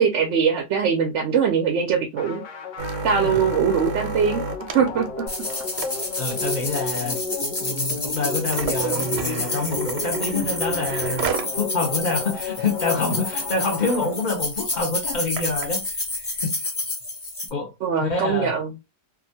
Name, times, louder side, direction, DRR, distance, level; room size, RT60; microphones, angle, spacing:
voice 1, 0.0-2.4 3.0-4.4 4.7-5.0 17.8-18.7, right 6 dB, 70° right, 0.6 m, -21 dB
sound 1, 2.2-14.7, left 4 dB, 60° left, 0.8 m, -33 dB
sound 2, 2.8-11.6 12.0-12.1 12.4-12.7 13.1-13.2 13.5-13.8 14.4-15.7 16.4-16.5, right 5 dB, 90° right, 1.2 m, -32 dB
sound 3, 5.3-17.5, left 2 dB, 25° left, 0.6 m, -29 dB
voice 2, 6.2-7.2 7.6-11.3 11.5-16.0 16.4-16.6 17.5-17.7 18.0-18.5, left 3 dB, 85° left, 0.4 m, -26 dB
2.8 x 2.2 x 2.6 m
omnidirectional pair, 1.8 m